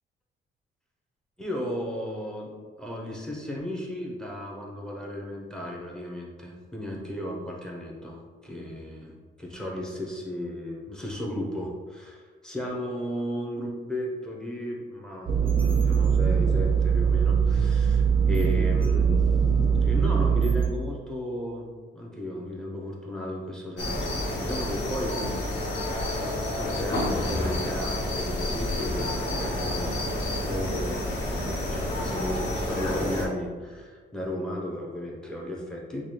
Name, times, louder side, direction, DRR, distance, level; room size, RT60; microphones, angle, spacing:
voice 1, 1.4-2.5 2.8-19.2 19.7-21.7 21.9-25.2 25.7-36.1, equal, 5° left, -2 dB, 0.8 m, -35 dB
sound 1, 15.3-20.7, right 6 dB, 25° right, 0.6 m, -22 dB
sound 2, 23.8-33.2, left 1 dB, 65° left, 1.0 m, -29 dB
3.7 x 2.3 x 3.1 m, 1.5 s
cardioid pair, 90°, 20 cm